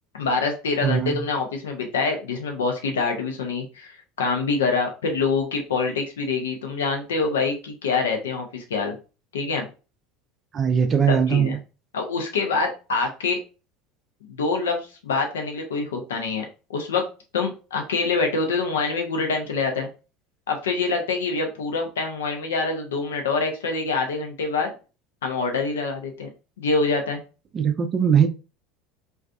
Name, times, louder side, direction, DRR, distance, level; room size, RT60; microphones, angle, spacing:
voice 1, 0.1-8.9 9.3-9.7 11.1-11.6 11.9-13.4 14.3-16.4 16.7-17.0 17.3-19.9 20.5-24.7 25.2-26.3 26.6-27.2, left 4 dB, 85° left, 0.6 m, -25 dB
voice 2, 0.8-1.2 10.5-11.6 27.5-28.3, right 7 dB, 35° right, 0.4 m, -20 dB
2.5 x 2.3 x 2.4 m
hypercardioid pair, 80°, 0 cm